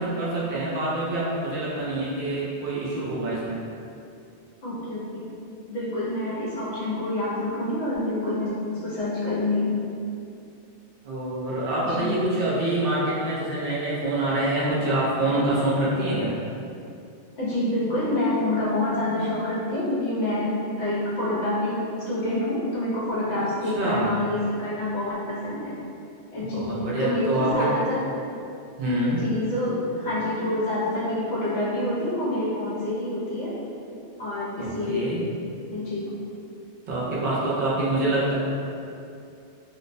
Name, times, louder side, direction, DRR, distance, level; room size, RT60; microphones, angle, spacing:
voice 1, 0.0-3.6 11.0-16.3 23.7-24.1 26.5-27.7 28.8-29.2 34.6-35.3 36.9-38.3, right 1 dB, 60° right, -7 dB, 0.7 m, -26 dB
voice 2, 4.6-5.3 5.7-9.7 11.8-12.1 17.4-25.8 26.3-28.1 29.1-33.6 34.2-35.1 35.7-36.1, left 1 dB, 70° left, -8 dB, 1.0 m, -27 dB
2.4 x 2.0 x 2.5 m, 2.6 s
omnidirectional pair, 1.2 m